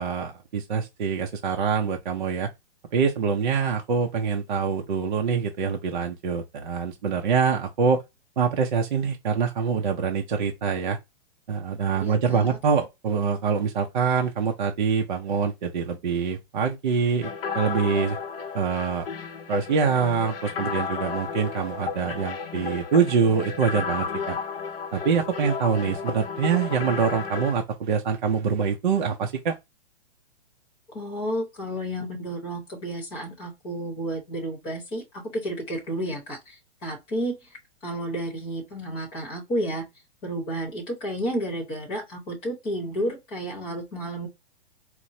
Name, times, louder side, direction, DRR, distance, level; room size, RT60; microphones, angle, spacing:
voice 1, 0.0-2.5 2.9-8.0 8.4-11.0 11.5-18.2 18.5-19.1 19.5-24.4 24.9-29.6, right 6 dB, 50° right, 0.5 m, -25 dB
voice 2, 12.0-12.6 30.9-37.5 37.8-39.9 40.2-44.3, right 1 dB, 15° left, 0.9 m, -31 dB
sound 1, 17.2-27.5, left 6 dB, 60° left, 0.7 m, -33 dB
4.4 x 2.0 x 2.6 m
hypercardioid pair, 175°, 33 cm